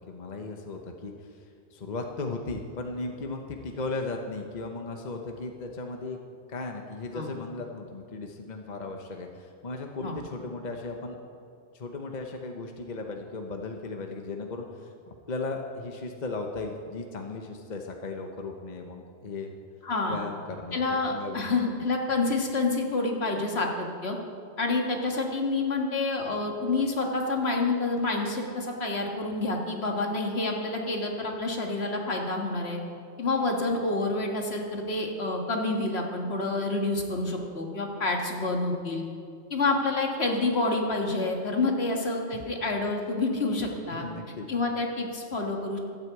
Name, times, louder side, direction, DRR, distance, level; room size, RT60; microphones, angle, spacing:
voice 1, 0.1-1.1 1.7-6.2 6.5-11.2 11.7-14.9 15.3-19.5 20.1-21.4 42.3-42.4 44.0-44.5, left 3 dB, 45° left, 3 dB, 1.0 m, -36 dB
voice 2, 19.8-20.2 20.7-24.2 24.6-32.8 33.2-39.0 39.5-44.1 44.5-45.8, left 3 dB, 70° left, 1 dB, 1.9 m, -28 dB
13.0 x 8.9 x 8.1 m, 2.4 s
omnidirectional pair, 1.1 m